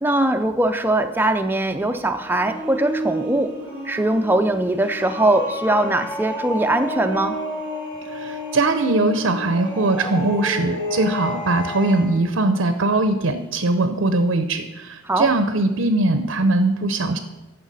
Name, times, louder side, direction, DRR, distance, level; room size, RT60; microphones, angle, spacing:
voice 1, 0.0-3.6 3.8-7.4 15.0-15.3, right 1 dB, 10° right, 7 dB, 0.4 m, -21 dB
sound 1, 1.7-12.2, equal, 20° left, 1.7 m, -31 dB
voice 2, 8.0-17.2, right 2 dB, 65° right, 8 dB, 0.6 m, -21 dB
14.0 x 5.7 x 4.0 m, 1.1 s
head